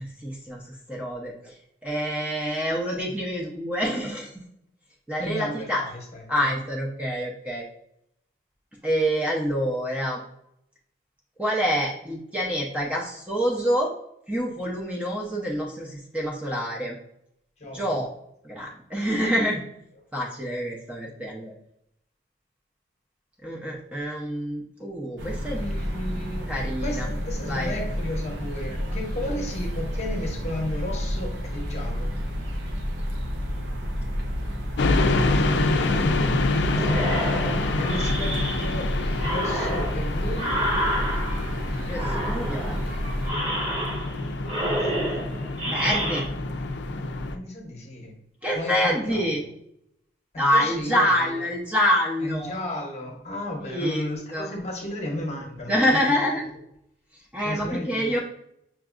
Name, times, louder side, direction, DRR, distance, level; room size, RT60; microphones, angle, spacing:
voice 1, 0.0-1.5 1.8-4.4 5.1-5.8 6.3-7.7 8.8-10.2 11.4-13.9 14.3-17.0 17.7-18.1 18.4-19.6 20.1-21.5 23.4-25.6 26.5-27.1 27.5-27.7 37.8-37.9 41.9-42.8 45.6-46.2 48.4-49.4 50.4-52.6 53.6-54.5 55.7-56.4 57.3-58.2, equal, 5° right, -3 dB, 0.5 m, -26 dB
voice 2, 5.2-6.2 17.6-18.0 25.5-26.5 26.8-32.1 36.8-37.3 37.7-39.0 39.3-40.6 44.7-45.2 47.3-48.1 48.5-49.4 50.3-51.5 52.2-56.2 57.4-58.2, left 1 dB, 35° left, 1 dB, 0.8 m, -34 dB
sound 1, 25.2-43.3, equal, 90° right, 0.7 m, -30 dB
sound 2, 34.8-47.4, left 2 dB, 75° left, 0.4 m, -27 dB
sound 3, 36.7-38.8 39.2-41.6 41.9-42.8 43.2-44.2 44.4-46.2, right 1 dB, 30° right, 1.0 m, -29 dB
5.8 x 2.6 x 2.4 m, 0.77 s
head